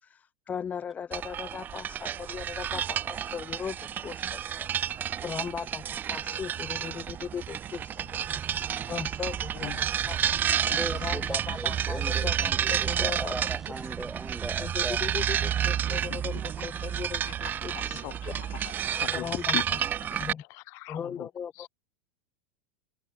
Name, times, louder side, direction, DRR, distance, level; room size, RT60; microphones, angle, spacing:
voice 1, 0.0-3.8 4.0-8.4 8.9-10.4 10.9-13.5 14.6-18.3 19.1-19.8 20.1-20.4 20.9-21.7, left 7 dB, 25° left, 2.2 m, -38 dB
sound 1, 1.1-20.3, right 9 dB, 30° right, 2.2 m, -30 dB
voice 2, 9.6-10.1 10.6-10.8 16.3-16.4 17.3-19.6 20.1-20.2 20.5-21.3 21.6-21.7, left 29 dB, 45° left, 1.3 m, -40 dB
voice 3, 10.7-15.1, right 1 dB, 5° right, 6.6 m, -38 dB
figure-of-eight pair, 85°, 7 cm